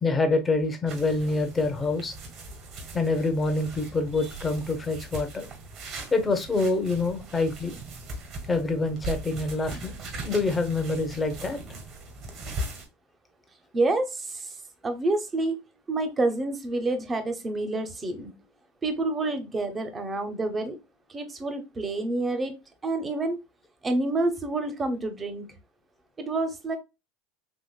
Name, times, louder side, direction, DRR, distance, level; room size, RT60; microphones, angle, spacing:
voice 1, 0.0-2.1 2.9-5.5 6.1-7.8 8.5-9.9 10.2-11.6, left 3 dB, 20° left, 6 dB, 0.9 m, -26 dB
sound 1, 0.9-12.9, right 2 dB, 50° right, 1.5 m, -39 dB
voice 2, 13.7-14.6 14.8-15.6 15.9-18.3 18.8-20.8 21.1-22.5 22.8-23.4 23.8-25.5 26.2-26.8, right 2 dB, 25° right, 7 dB, 0.9 m, -28 dB
4.1 x 2.9 x 2.2 m, 0.25 s
hypercardioid pair, 100°, 0 cm